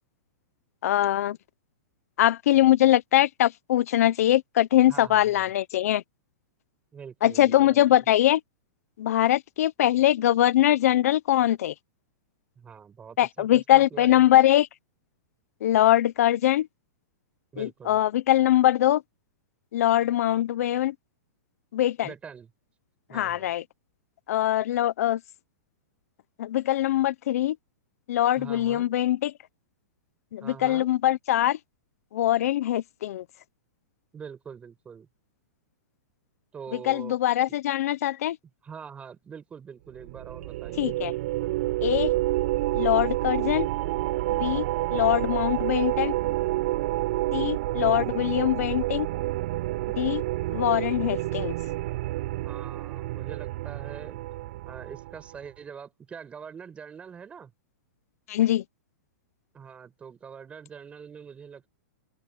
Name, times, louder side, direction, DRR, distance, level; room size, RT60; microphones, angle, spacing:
voice 1, 0.8-1.4 2.2-6.0 7.2-8.4 9.0-11.7 13.2-14.7 15.6-16.7 17.6-19.0 19.7-20.9 21.7-22.1 23.1-23.6 24.3-25.2 26.4-27.6 28.1-29.3 30.3-31.6 32.1-33.2 36.8-38.4 40.8-41.1 41.8-42.1 42.7-43.7 44.4-44.7 44.9-46.1 47.3-49.1 50.0-50.2 50.5-51.5 58.3-58.6, left 13 dB, 60° left, 0.8 m, -22 dB
voice 2, 4.9-5.5 6.9-8.0 12.6-14.2 17.5-18.0 22.0-22.5 23.1-23.5 28.3-28.9 30.4-30.9 34.1-35.1 36.5-37.2 38.6-41.0 52.4-54.2 54.6-57.5 59.5-61.7, right 6 dB, 15° right, 6.9 m, -44 dB
sound 1, 39.9-55.4, right 17 dB, 50° right, 4.5 m, -29 dB
open air
hypercardioid pair, 155°, 9 cm